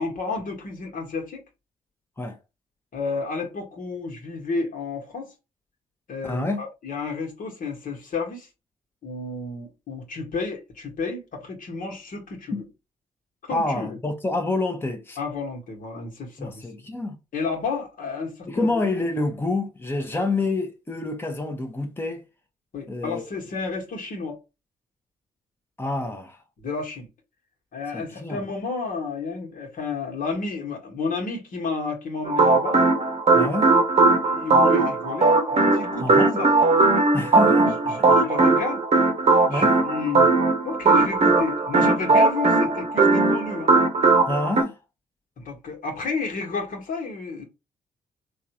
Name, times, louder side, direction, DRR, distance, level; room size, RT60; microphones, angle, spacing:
voice 1, 0.0-1.4 2.9-5.3 6.1-8.5 9.0-12.6 13.5-14.0 15.2-16.7 17.3-18.8 22.7-24.4 26.6-27.1 27.7-32.8 34.3-36.5 37.6-38.8 39.5-40.3 40.6-43.7 45.4-47.4, left 4 dB, 55° left, 1.4 m, -31 dB
voice 2, 6.2-6.7 12.5-12.6 13.5-15.2 16.4-17.2 18.5-22.2 22.9-23.3 25.8-26.4 27.9-28.4 33.3-33.7 36.0-36.4 37.1-37.7 39.5-39.8 44.3-44.8, left 2 dB, 15° left, 0.9 m, -27 dB
sound 1, 32.3-44.6, right 3 dB, 40° right, 0.9 m, -19 dB
3.5 x 2.4 x 2.9 m
hypercardioid pair, 45°, 16 cm